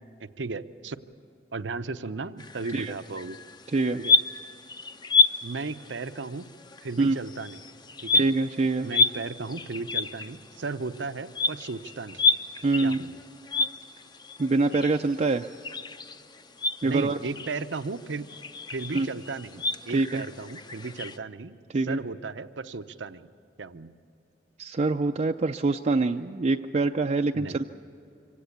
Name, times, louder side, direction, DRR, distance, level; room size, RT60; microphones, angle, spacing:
voice 1, 0.2-1.0 1.5-3.4 4.0-4.1 5.4-6.5 6.8-7.6 8.0-8.2 8.8-12.2 12.8-13.2 16.8-18.3 18.7-21.5 21.8-23.3 23.6-23.9 27.3-27.6, right 3 dB, 80° right, 12 dB, 0.7 m, -35 dB
sound 1, 2.4-21.2, left 3 dB, 25° left, 0.6 m, -30 dB
voice 2, 3.7-4.0 7.0-7.2 8.2-8.9 12.6-13.0 14.4-15.5 16.8-17.2 18.9-19.1 19.9-20.2 21.7-22.0 24.6-27.6, right 3 dB, 40° right, 4 dB, 0.4 m, -25 dB
24.5 x 17.0 x 8.5 m, 2.7 s
head